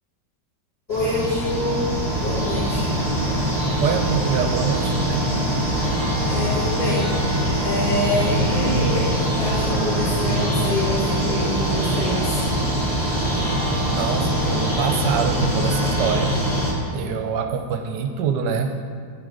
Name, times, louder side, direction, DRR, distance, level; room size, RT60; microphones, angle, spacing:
voice 1, 0.9-1.9 2.2-2.8 6.2-7.1 7.6-12.4, left 1 dB, 60° left, -9 dB, 1.8 m, -26 dB
sound 1, 0.9-16.7, equal, 20° right, 1.8 m, -23 dB
voice 2, 3.8-5.3 13.9-16.3 16.9-18.7, right 7 dB, 80° right, 5 dB, 1.2 m, -25 dB
8.9 x 3.9 x 4.7 m, 2.1 s
omnidirectional pair, 1.9 m